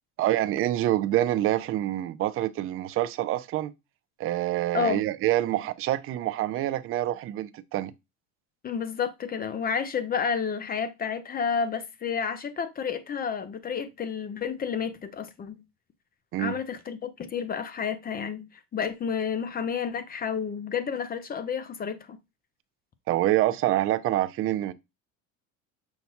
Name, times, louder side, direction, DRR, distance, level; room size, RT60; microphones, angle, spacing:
voice 1, 0.2-3.7 4.2-7.9 16.3-16.6 23.1-24.7, right 14 dB, 35° right, 0.4 m, -26 dB
voice 2, 8.6-15.6 16.4-22.2, left 6 dB, 25° left, 0.5 m, -30 dB
5.8 x 2.2 x 4.1 m
supercardioid pair, 120°, 39 cm